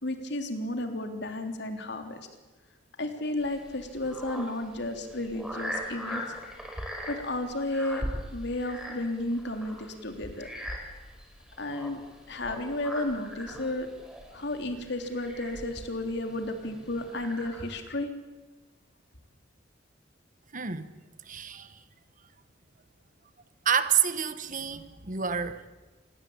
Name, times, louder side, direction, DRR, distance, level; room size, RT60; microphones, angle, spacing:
voice 1, 0.0-2.2 3.0-6.2 7.1-8.0 8.3-10.5 11.6-12.0 12.3-13.9 14.3-18.1, left 1 dB, 65° left, 3.4 m, -33 dB
sound 1, 3.4-17.9, equal, 5° right, 5.4 m, -41 dB
voice 2, 20.5-20.9 21.2-21.8 23.6-25.7, right 8 dB, 45° right, 1.5 m, -28 dB
26.5 x 20.5 x 8.8 m
head